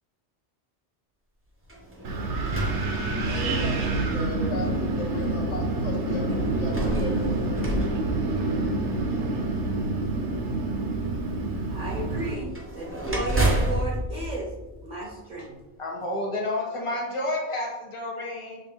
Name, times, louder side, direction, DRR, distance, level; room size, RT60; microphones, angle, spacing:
sound 1, 1.6-3.6 4.4-4.5 6.4-8.9 12.3-15.4, right 1 dB, 20° right, 0.3 m, -30 dB
Wind, 2.0-12.3, right 2 dB, 75° right, 0.9 m, -27 dB
voice 1, 3.2-7.2, left 2 dB, 75° left, -3 dB, 1.3 m, -37 dB
voice 2, 11.7-14.5 14.8-15.6, right 2 dB, 50° right, -2 dB, 0.6 m, -34 dB
voice 3, 15.8-18.6, left 1 dB, 30° left, -1 dB, 0.8 m, -30 dB
5.2 x 2.1 x 2.8 m, 1.1 s
omnidirectional pair, 1.2 m